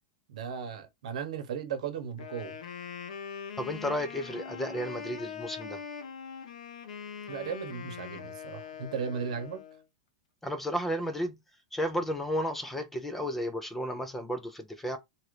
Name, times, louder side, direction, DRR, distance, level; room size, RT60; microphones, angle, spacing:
voice 1, 0.3-2.5 7.3-9.6, right 7 dB, 70° right, 0.9 m, -36 dB
Wind instrument woodwind instrument, 2.1-9.8, left 7 dB, 85° left, 0.8 m, -42 dB
voice 2, 3.6-5.8 10.4-11.4 11.7-15.0, equal, 5° left, 0.3 m, -33 dB
2.8 x 2.5 x 3.1 m
supercardioid pair, 165°, 4 cm